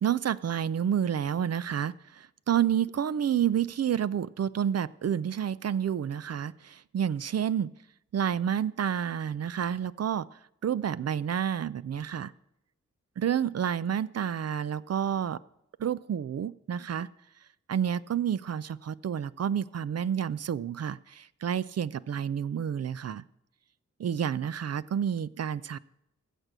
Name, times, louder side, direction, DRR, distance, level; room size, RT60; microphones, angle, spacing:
voice 1, 0.0-7.7 8.1-12.3 13.2-15.4 15.8-17.1 17.7-23.2 24.0-25.8, right 9 dB, 60° right, 17 dB, 0.5 m, -29 dB
15.5 x 6.6 x 6.1 m, 0.84 s
cardioid pair, 55°, 29 cm